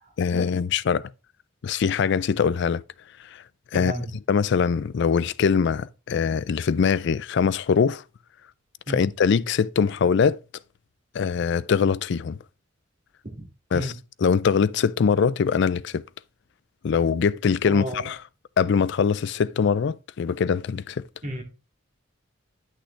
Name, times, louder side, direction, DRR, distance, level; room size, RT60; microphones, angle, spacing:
voice 1, 0.2-1.1 1.6-2.8 3.3-3.4 3.7-3.9 4.3-8.0 8.9-10.4 11.1-12.4 13.7-13.9 14.2-16.0 16.8-18.2 18.6-21.0, left 6 dB, 60° left, 0.4 m, -22 dB
voice 2, 3.7-4.0 8.9-9.1 13.2-13.5 13.7-14.0 17.6-18.1 21.2-21.4, equal, 40° right, 2.1 m, -32 dB
9.7 x 6.4 x 3.3 m
head